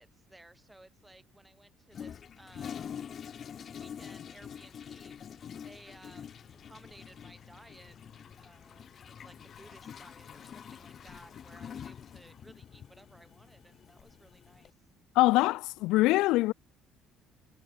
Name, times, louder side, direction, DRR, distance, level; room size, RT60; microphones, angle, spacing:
voice 1, 0.0-2.8 3.5-5.2 5.6-6.4 6.6-8.0 8.4-8.9 9.2-14.7, right 1 dB, 5° right, 6.1 m, -57 dB
Toilet flush, 1.9-14.7, left 8 dB, 30° left, 1.6 m, -46 dB
voice 2, 15.2-16.5, left 19 dB, 80° left, 0.4 m, -24 dB
cardioid pair, 175°, 0 cm